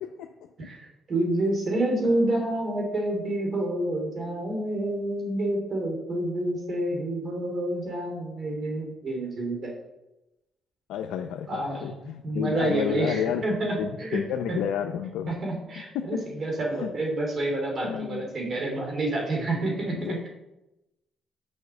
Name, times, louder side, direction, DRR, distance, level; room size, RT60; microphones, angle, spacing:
voice 1, 0.6-9.7 11.5-11.9 12.2-14.2 14.5-14.6 15.3-20.2, right 1 dB, 50° right, 0 dB, 2.9 m, -28 dB
voice 2, 10.9-13.5 13.8-15.3 15.9-16.0 16.7-16.9 17.8-18.3 19.9-20.3, left 9 dB, 90° left, 4 dB, 0.6 m, -31 dB
6.3 x 5.6 x 6.9 m, 0.94 s
cardioid pair, 90°, 0 cm